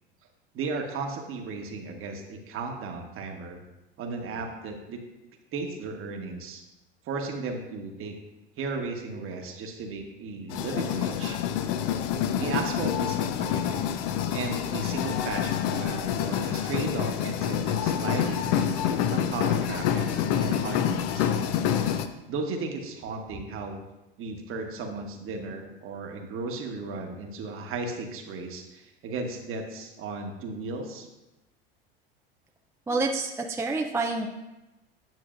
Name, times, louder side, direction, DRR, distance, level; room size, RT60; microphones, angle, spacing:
voice 1, 0.5-3.6 4.0-5.0 5.5-6.6 7.0-8.2 8.6-11.4 12.4-13.9 14.3-20.1 20.4-21.3 22.3-23.8 24.2-31.1, right 3 dB, 45° right, 3 dB, 1.3 m, -35 dB
sound 1, 10.5-22.1, left 9 dB, 55° left, 0.6 m, -27 dB
voice 2, 32.9-34.3, right 3 dB, 10° right, 2 dB, 0.4 m, -28 dB
9.3 x 6.3 x 2.5 m, 1.0 s
hypercardioid pair, 85°, 30 cm